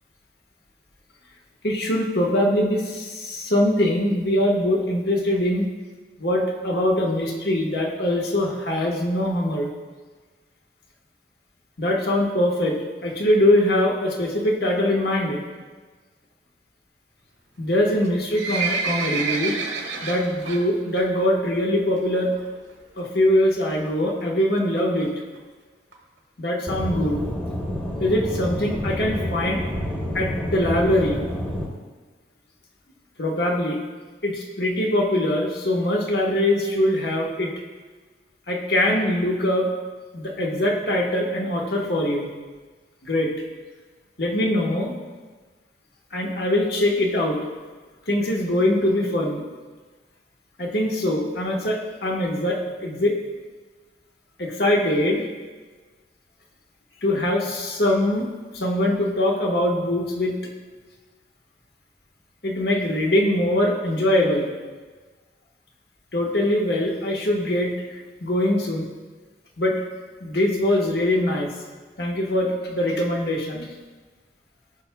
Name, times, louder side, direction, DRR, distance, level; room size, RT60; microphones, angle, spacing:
voice 1, 1.6-5.7 6.2-9.7 11.8-15.4 17.6-19.5 20.0-22.3 23.0-25.1 26.4-27.2 28.0-29.6 30.1-31.2 33.2-33.8 34.2-37.5 38.5-39.7 40.1-42.3 43.0-43.3 44.2-44.9 46.1-47.4 48.1-49.4 50.6-53.1 54.4-55.2 57.0-58.3 58.5-60.3 62.4-64.5 66.1-68.8 69.6-69.8 70.2-71.5 72.0-73.7, left 1 dB, 60° left, -1 dB, 1.2 m, -22 dB
Livestock farm animals working animals, 17.9-20.6 21.0-21.2 21.5-21.6 22.3-22.4 22.7-22.8 23.0-23.1 23.6-23.9 24.5-24.6 24.8-24.9 25.0-25.1 25.4-25.5 25.9-26.0 26.5-26.6 27.0-27.1, right 4 dB, 90° right, 1.4 m, -28 dB
Aircraft / Engine, 26.7-31.7, equal, 10° left, 1.0 m, -28 dB
14.5 x 5.8 x 2.3 m, 1.4 s
head